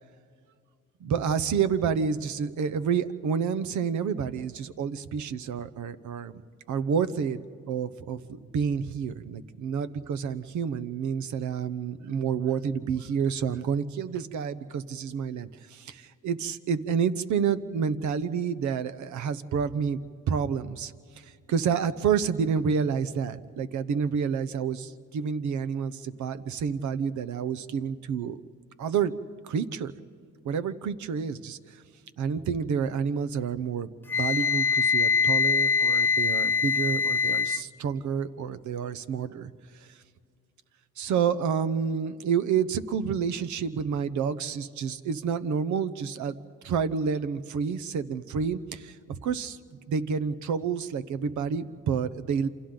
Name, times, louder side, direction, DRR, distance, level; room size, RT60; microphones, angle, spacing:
voice 1, 1.0-6.4 6.7-20.0 20.3-20.9 21.2-28.4 28.8-29.1 29.4-29.9 30.4-31.6 32.2-39.5 41.0-46.4 46.6-49.6 49.9-52.5, right 6 dB, 75° right, 13 dB, 1.0 m, -29 dB
Wind instrument woodwind instrument, 34.1-37.6, left 6 dB, 5° left, 0.6 m, -23 dB
28.5 x 27.0 x 3.9 m, 2.2 s
cardioid pair, 90°, 30 cm